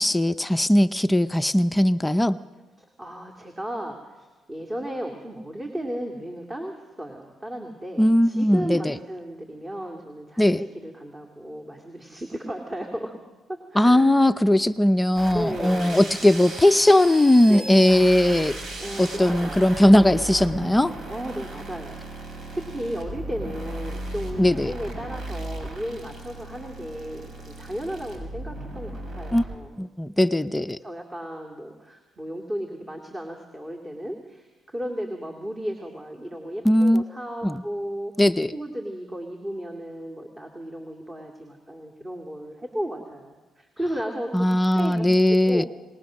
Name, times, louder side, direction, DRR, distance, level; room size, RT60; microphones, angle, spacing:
voice 1, 0.0-2.4 8.0-8.9 10.4-10.6 13.8-18.6 19.0-20.9 24.4-24.7 29.3-29.4 29.8-30.8 36.6-37.0 37.4-37.6 38.2-38.5 44.3-45.6, left 1 dB, 10° left, 11 dB, 0.5 m, -19 dB
voice 2, 2.8-13.2 13.7-14.1 15.3-16.1 17.5-17.7 18.8-19.7 21.1-29.8 30.5-38.1 38.5-45.7, equal, 20° right, 2 dB, 2.4 m, -34 dB
sound 1, 15.2-29.6, right 1 dB, 60° right, 4.9 m, -36 dB
21.5 x 19.5 x 6.3 m, 1.2 s
cardioid pair, 90°, 0 cm